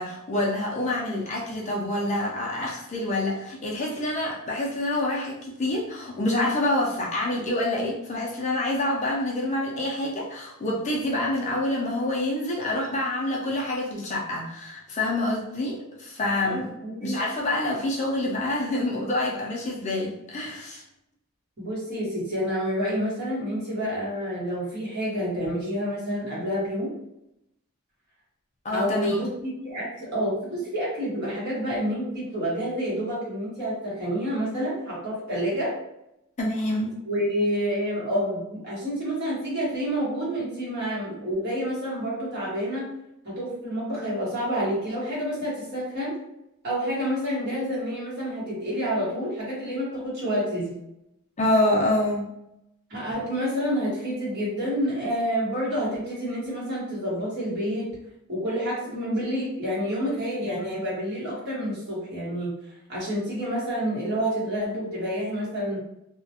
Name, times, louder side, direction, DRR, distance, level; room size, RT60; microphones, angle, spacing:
voice 1, 0.0-16.7 17.0-20.8 28.6-29.2 36.4-36.9 51.4-52.2, left 1 dB, 35° left, -2 dB, 0.4 m, -27 dB
voice 2, 16.4-17.2 21.6-26.9 28.7-35.7 37.1-42.9 43.2-46.1 46.6-50.8 52.9-57.9 58.3-62.6 62.9-65.8, equal, 50° right, -7 dB, 1.2 m, -28 dB
2.3 x 2.1 x 2.8 m, 0.84 s
head